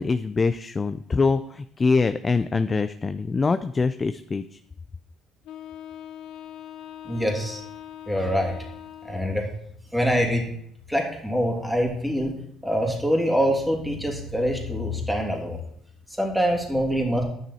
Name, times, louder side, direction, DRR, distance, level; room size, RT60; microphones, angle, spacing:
voice 1, 0.0-4.6, left 4 dB, 30° left, 11 dB, 0.4 m, -24 dB
Wind instrument woodwind instrument, 5.4-9.6, left 11 dB, 75° left, 0.9 m, -41 dB
voice 2, 7.0-7.6 8.1-8.5 9.0-9.5 9.9-10.5 10.9-12.3 12.6-15.6 16.1-17.2, equal, ahead, 0 dB, 2.6 m, -24 dB
10.5 x 6.1 x 4.2 m, 0.69 s
supercardioid pair, 80°, 0 cm